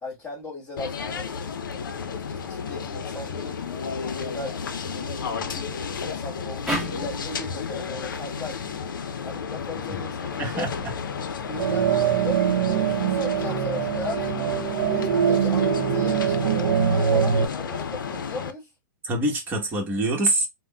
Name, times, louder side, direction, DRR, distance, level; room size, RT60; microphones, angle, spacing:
voice 1, 0.0-1.3 2.3-3.6 4.0-8.6 9.2-10.7 11.2-12.4 12.7-14.5 14.9-18.7, left 2 dB, 20° left, 1.9 m, -37 dB
sound 1, 0.8-18.5, left 6 dB, 85° left, 0.5 m, -32 dB
sound 2, 6.7-9.9, right 1 dB, ahead, 1.3 m, -35 dB
voice 2, 10.4-10.9 19.0-20.5, right 2 dB, 20° right, 1.1 m, -25 dB
sound 3, 11.6-17.5, right 8 dB, 65° right, 0.6 m, -23 dB
3.6 x 2.1 x 2.2 m
hypercardioid pair, 130°, 11 cm